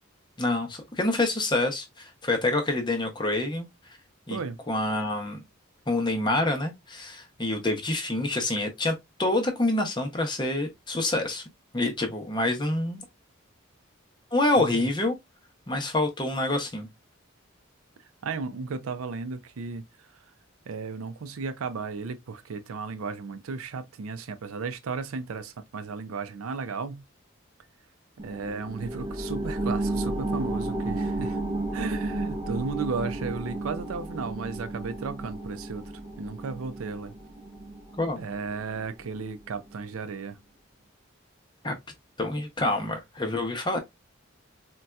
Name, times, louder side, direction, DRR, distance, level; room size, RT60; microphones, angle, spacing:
voice 1, 0.4-3.7 4.3-4.4 4.7-5.4 5.9-11.4 11.7-13.0 14.3-15.2 15.7-16.9 38.0-38.2 41.6-41.7 42.2-43.8, left 2 dB, 20° left, 0.6 m, -27 dB
voice 2, 18.2-19.9 20.7-27.0 28.2-31.4 31.7-35.8 36.2-37.1 38.2-40.4, right 4 dB, 90° right, 0.4 m, -34 dB
sound 1, 28.2-39.3 39.7-39.8, right 2 dB, 25° right, 0.6 m, -33 dB
4.0 x 2.2 x 2.2 m
head